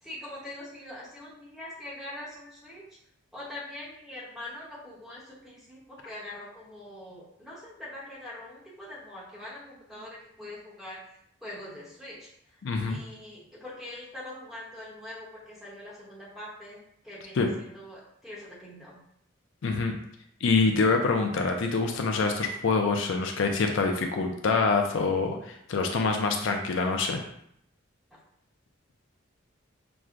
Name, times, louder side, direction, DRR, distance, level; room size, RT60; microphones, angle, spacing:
voice 1, 0.0-2.8 3.3-11.0 11.4-12.6 12.9-16.8 17.0-19.0, left 1 dB, ahead, -7 dB, 0.9 m, -43 dB
voice 2, 12.6-13.0 17.4-17.5 19.6-19.9 20.4-27.2, left 4 dB, 65° left, 3 dB, 0.4 m, -25 dB
5.9 x 2.1 x 2.5 m, 0.72 s
head